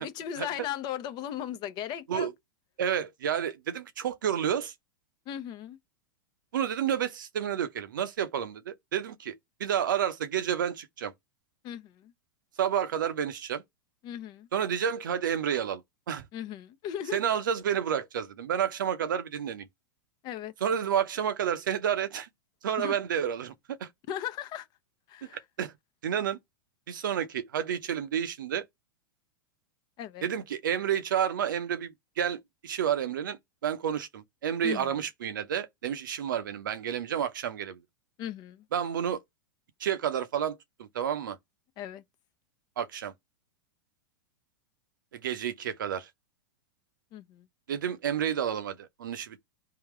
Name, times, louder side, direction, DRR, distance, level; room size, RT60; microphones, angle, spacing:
voice 1, 0.0-2.3 5.3-5.8 11.6-12.1 14.0-14.5 16.3-17.2 20.2-20.5 22.8-22.9 24.1-24.7 25.1-25.4 30.0-30.3 34.6-34.9 38.2-38.6 41.8-42.0 47.1-47.4, left 10 dB, 40° left, 0.8 m, -37 dB
voice 2, 2.8-4.7 6.5-9.3 9.6-11.1 12.6-13.6 14.5-15.8 16.1-16.2 17.1-19.7 20.6-22.3 22.6-23.9 25.3-25.7 26.0-26.4 26.9-28.6 30.2-37.8 38.7-39.2 39.8-41.4 42.8-43.1 45.1-46.1 47.7-49.4, right 9 dB, 70° right, 0.7 m, -30 dB
3.7 x 2.8 x 4.7 m
hypercardioid pair, 100°, 11 cm